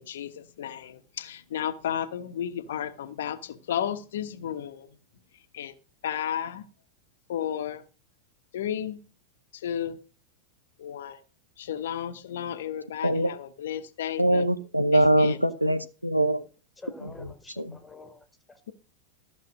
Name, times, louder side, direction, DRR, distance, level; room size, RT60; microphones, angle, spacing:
voice 1, 0.0-4.9 5.5-5.7 6.0-6.6 7.3-7.8 8.5-9.0 9.5-10.0 10.8-11.2 11.6-14.5 14.9-15.4, left 9 dB, 60° left, 1.0 m, -33 dB
voice 2, 14.2-16.4 17.0-17.1 17.6-17.7, right 1 dB, 90° right, 0.9 m, -23 dB
voice 3, 16.8-18.7, left 2 dB, 5° left, 2.0 m, -47 dB
14.0 x 6.1 x 6.2 m
figure-of-eight pair, 90°, 0 cm